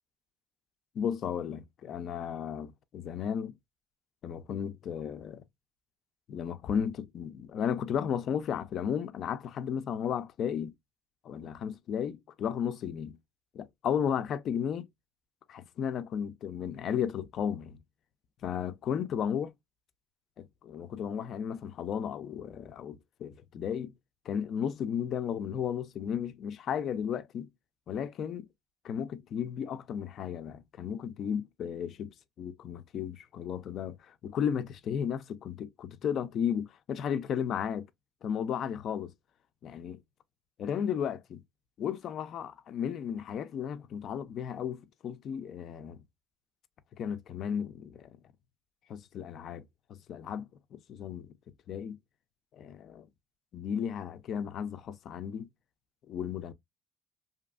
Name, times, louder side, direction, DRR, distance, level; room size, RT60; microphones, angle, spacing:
voice 1, 0.9-3.5 4.2-5.4 6.3-10.7 11.2-13.2 13.5-14.9 15.5-17.8 18.4-19.5 20.4-23.9 24.3-27.5 27.9-28.5 28.8-32.1 32.4-37.9 38.2-39.1 39.6-40.0 40.6-41.4 41.8-46.0 47.0-48.2 48.9-49.6 49.9-51.3 51.7-52.0 52.5-53.1 53.5-55.5 56.1-56.5, left 8 dB, 55° left, 0.3 m, -34 dB
2.7 x 2.4 x 2.2 m
cardioid pair, 120°, 0 cm